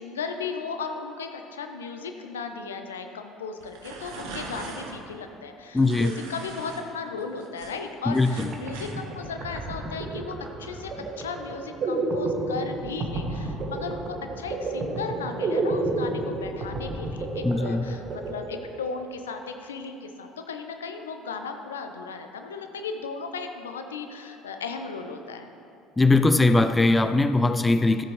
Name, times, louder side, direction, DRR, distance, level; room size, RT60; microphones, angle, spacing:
voice 1, 0.0-25.5, left 5 dB, 75° left, 6 dB, 0.6 m, -36 dB
sound 1, 3.6-4.9 5.8-6.8 7.2-9.0, right 3 dB, 65° right, 1.2 m, -40 dB
voice 2, 5.7-6.1 8.1-8.5 17.4-17.9 26.0-28.0, left 2 dB, 15° left, 10 dB, 0.4 m, -20 dB
sound 2, 8.5-19.1, right 2 dB, 40° right, 1.2 m, -31 dB
14.0 x 7.6 x 3.1 m, 2.7 s
figure-of-eight pair, 60°, 0 cm